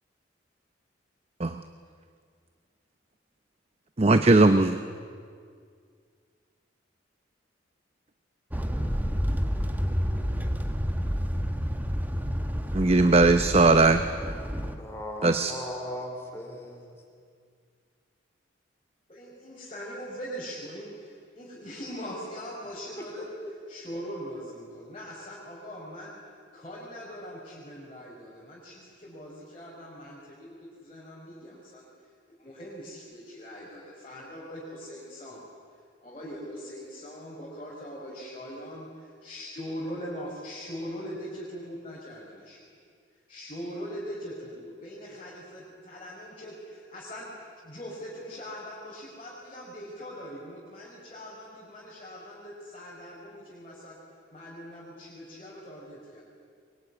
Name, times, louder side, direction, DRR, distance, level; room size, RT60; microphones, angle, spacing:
voice 1, 4.0-4.8 12.7-14.0 15.2-15.5, right 3 dB, 30° right, 9 dB, 0.7 m, -19 dB
sound 1, 8.5-14.7, equal, 10° right, 1.5 m, -29 dB
voice 2, 14.6-16.9, left 1 dB, 15° left, 1 dB, 4.0 m, -38 dB
voice 3, 19.1-23.3 23.7-26.2 26.5-31.9 32.4-35.4 36.0-42.6 43.3-54.0 54.3-56.2, equal, 30° left, -6 dB, 4.8 m, -41 dB
23.0 x 21.5 x 9.5 m, 2.1 s
head